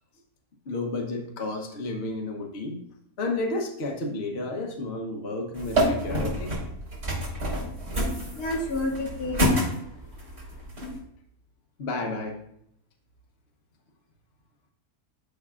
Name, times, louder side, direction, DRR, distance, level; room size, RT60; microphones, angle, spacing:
voice 1, 0.7-2.8 3.2-6.5 11.8-12.4, left 2 dB, 45° left, 2 dB, 1.1 m, -31 dB
sound 1, 5.5-11.0, equal, 50° right, 3.6 m, -28 dB
voice 2, 8.3-10.7, left 2 dB, 70° left, 0 dB, 1.8 m, -32 dB
11.5 x 5.5 x 2.5 m, 0.72 s
omnidirectional pair, 1.6 m